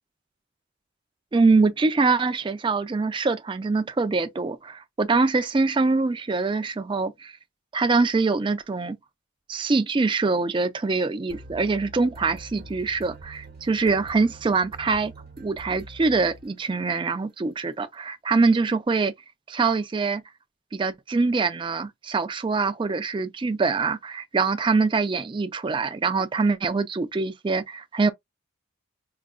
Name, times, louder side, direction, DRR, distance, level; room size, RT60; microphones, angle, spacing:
voice 1, 1.3-7.3 7.7-9.0 9.5-15.1 15.4-19.1 19.5-20.2 20.7-28.1, right 4 dB, 25° right, 0.3 m, -24 dB
sound 1, 11.3-17.0, right 2 dB, 50° right, 1.0 m, -45 dB
4.8 x 2.3 x 2.3 m
head